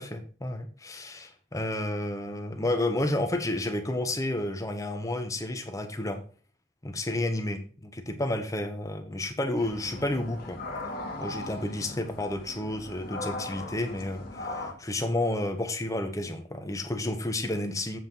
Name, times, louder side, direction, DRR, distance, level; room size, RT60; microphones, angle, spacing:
voice 1, 0.0-6.2 6.8-10.6 11.2-18.0, left 1 dB, 15° left, 6 dB, 0.8 m, -31 dB
sound 1, 9.5-14.7, left 2 dB, 50° left, 1.4 m, -38 dB
7.8 x 4.3 x 5.4 m, 0.40 s
head